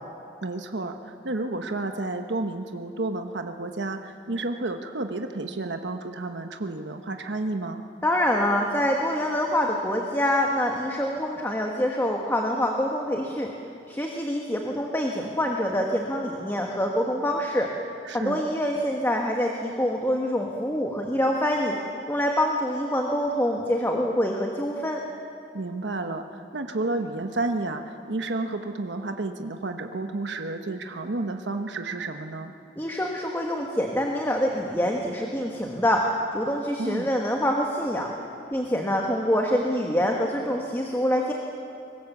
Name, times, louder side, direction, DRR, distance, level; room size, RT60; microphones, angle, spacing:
voice 1, 0.4-7.8 18.0-18.4 25.5-32.5 36.8-37.1, right 2 dB, 80° right, 6 dB, 1.1 m, -31 dB
voice 2, 8.0-13.5 13.9-17.7 18.1-21.8 22.1-25.0 32.8-38.1 38.5-41.3, equal, 15° left, 1 dB, 1.3 m, -25 dB
23.5 x 20.0 x 7.3 m, 2.6 s
head